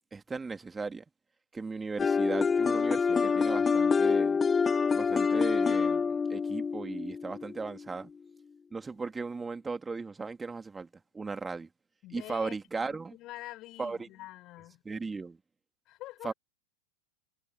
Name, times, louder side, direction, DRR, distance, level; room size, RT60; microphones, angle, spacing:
voice 1, 0.1-1.0 1.5-4.4 4.9-8.1 8.7-10.9 11.1-11.7 12.1-13.2 13.8-14.1 14.8-15.4 16.2-16.3, right 4 dB, 10° right, 3.0 m, -37 dB
sound 1, 2.0-7.8, left 5 dB, 15° left, 0.9 m, -26 dB
voice 2, 12.0-14.8 15.9-16.3, left 17 dB, 35° left, 6.9 m, -46 dB
figure-of-eight pair, 90°, 0 cm